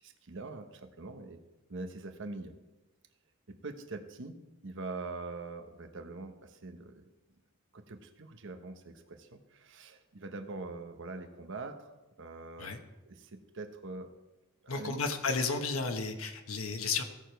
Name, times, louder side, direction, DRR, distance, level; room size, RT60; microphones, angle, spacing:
voice 1, 0.0-1.4 1.7-2.5 3.5-7.1 7.7-11.9 12.2-12.7 13.0-14.1 14.6-15.0, right 3 dB, 60° right, 6 dB, 1.0 m, -43 dB
voice 2, 14.7-17.0, left 4 dB, 70° left, 5 dB, 1.1 m, -33 dB
16.0 x 6.7 x 4.6 m, 1.0 s
head